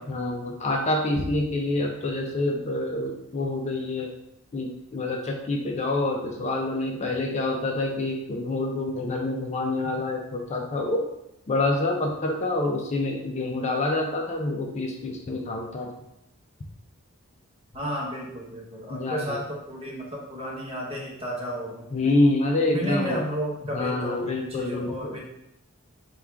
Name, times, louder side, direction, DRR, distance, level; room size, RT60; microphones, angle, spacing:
voice 1, 0.1-4.1 4.5-11.0 11.5-15.9 18.9-19.4 21.9-23.2 23.7-25.2, left 2 dB, 30° left, 1 dB, 0.4 m, -27 dB
voice 2, 17.7-21.9 22.6-25.2, equal, 30° right, -2 dB, 0.9 m, -33 dB
3.5 x 2.3 x 4.4 m, 0.86 s
head